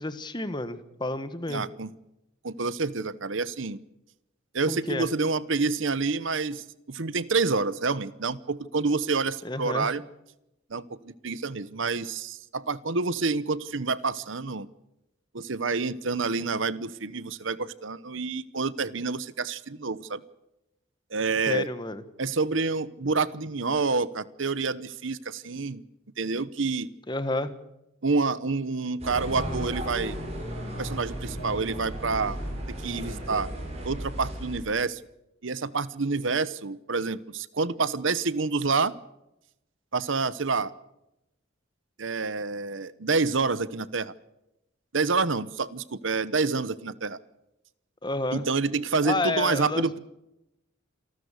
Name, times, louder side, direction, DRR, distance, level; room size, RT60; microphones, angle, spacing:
voice 1, 0.0-1.6 4.7-5.1 9.4-9.9 21.5-22.0 27.1-27.5 48.0-48.4 49.0-49.9, left 2 dB, 20° left, 12 dB, 1.3 m, -30 dB
voice 2, 1.5-1.9 2.4-3.8 4.5-10.0 10.7-14.7 15.3-20.2 21.1-21.7 22.2-25.8 26.2-26.9 28.0-30.2 30.8-32.4 32.7-33.5 33.8-35.0 35.4-38.9 39.9-40.7 42.0-44.1 44.9-47.2 48.3-50.0, right 4 dB, 70° right, 18 dB, 1.0 m, -28 dB
sound 1, 29.0-34.6, equal, 30° right, 7.6 m, -35 dB
27.5 x 13.0 x 8.2 m, 0.88 s
head